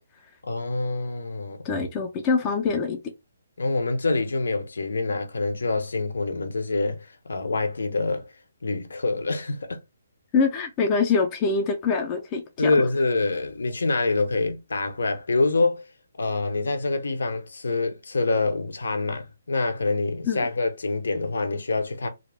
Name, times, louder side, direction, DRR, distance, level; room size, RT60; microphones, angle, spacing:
voice 1, 0.4-1.6 3.6-8.3 8.6-9.8 12.6-15.8 16.2-22.1, left 3 dB, 85° left, 0.6 m, -26 dB
voice 2, 1.6-3.0 10.3-12.7 20.3-20.5, left 5 dB, 15° left, 0.3 m, -24 dB
2.3 x 2.0 x 3.2 m
hypercardioid pair, 175°, 0 cm